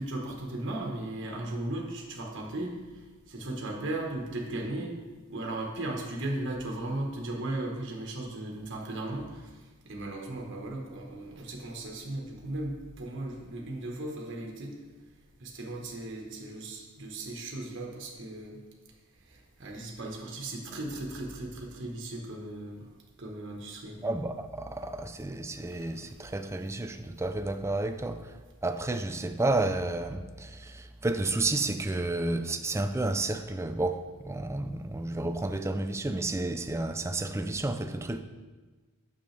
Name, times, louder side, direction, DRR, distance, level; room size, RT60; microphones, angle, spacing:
voice 1, 0.0-2.7 3.3-4.9 5.3-9.5 9.8-14.7 15.4-18.6 19.3-22.8 23.2-24.0, right 2 dB, 60° right, 1.4 m, -36 dB
voice 2, 24.0-28.4 28.6-38.2, right 2 dB, 15° right, 0.4 m, -31 dB
9.1 x 7.0 x 3.4 m
head